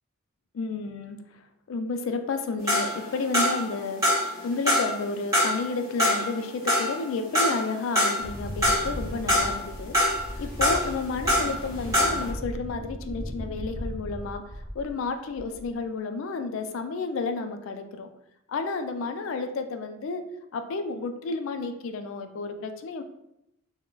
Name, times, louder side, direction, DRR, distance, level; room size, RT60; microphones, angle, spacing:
voice 1, 0.5-18.1 18.5-20.2 20.5-23.0, left 4 dB, 65° left, 7 dB, 0.3 m, -31 dB
sound 1, 2.7-3.8 4.0-5.0 5.3-8.3 8.6-9.6 9.9-11.6 11.9-12.3, equal, 15° right, 0.9 m, -24 dB
Wind, 8.2-15.0 15.3-15.8, equal, 10° left, 0.6 m, -37 dB
2.2 x 2.1 x 3.7 m, 0.83 s
head